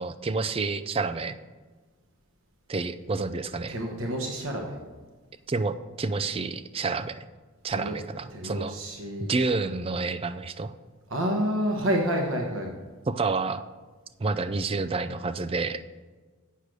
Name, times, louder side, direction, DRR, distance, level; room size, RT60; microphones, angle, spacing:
voice 1, 0.0-1.4 2.7-3.8 5.5-7.3 7.6-8.8 9.3-10.7 13.1-13.6 14.2-15.8, right 3 dB, 25° right, 13 dB, 0.4 m, -29 dB
voice 2, 3.7-4.8 7.7-8.0 8.3-9.4 11.1-12.7, equal, 65° right, 1 dB, 1.2 m, -29 dB
8.3 x 6.6 x 6.2 m, 1.4 s
head